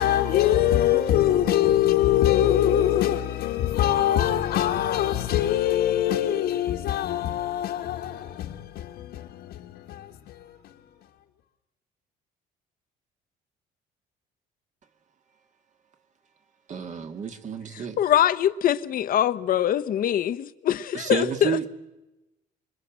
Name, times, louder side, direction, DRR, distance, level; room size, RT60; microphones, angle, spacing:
voice 1, 0.0-10.9, left 12 dB, 75° left, 1.7 m, -23 dB
voice 2, 16.7-18.0 20.9-21.7, right 6 dB, 45° right, 2.4 m, -30 dB
voice 3, 17.7-21.6, left 11 dB, 55° left, 1.1 m, -23 dB
25.5 x 21.5 x 7.6 m
cardioid pair, 110°, 17 cm